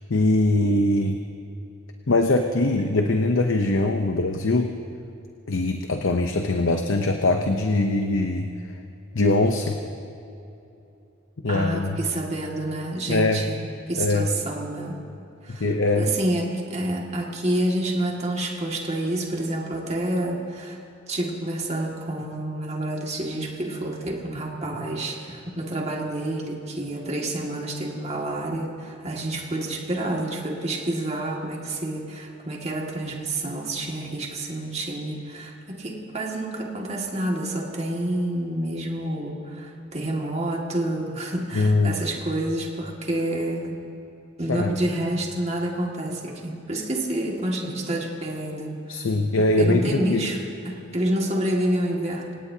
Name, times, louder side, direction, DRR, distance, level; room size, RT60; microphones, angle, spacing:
voice 1, 0.1-1.2 2.1-4.7 5.5-8.5 9.1-9.8 11.4-12.0 13.1-13.4 14.0-14.3 15.6-16.1 41.5-42.0 44.5-44.7 48.9-50.3, left 2 dB, 70° left, 5 dB, 0.8 m, -22 dB
voice 2, 11.5-13.6 13.9-15.0 15.4-43.8 44.4-49.1 49.6-52.3, right 1 dB, 30° right, -1 dB, 2.1 m, -28 dB
26.0 x 18.0 x 2.8 m, 2.8 s
head